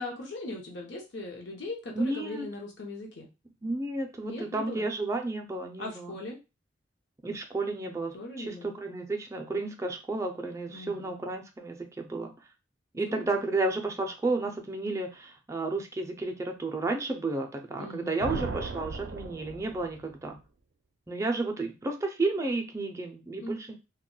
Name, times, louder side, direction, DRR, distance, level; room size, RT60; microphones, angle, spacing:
voice 1, 0.0-3.3 4.2-4.8 5.8-6.4 8.1-8.7 10.7-11.2 13.0-13.4 17.8-18.6 23.4-23.7, left 2 dB, 70° left, 0 dB, 0.7 m, -40 dB
voice 2, 1.9-2.5 3.6-6.2 7.2-12.3 12.9-20.4 21.1-23.7, right 2 dB, 15° right, 3 dB, 0.4 m, -32 dB
sound 1, 18.2-20.2, right 4 dB, 90° right, 0.4 m, -37 dB
2.2 x 2.1 x 3.7 m, 0.28 s
head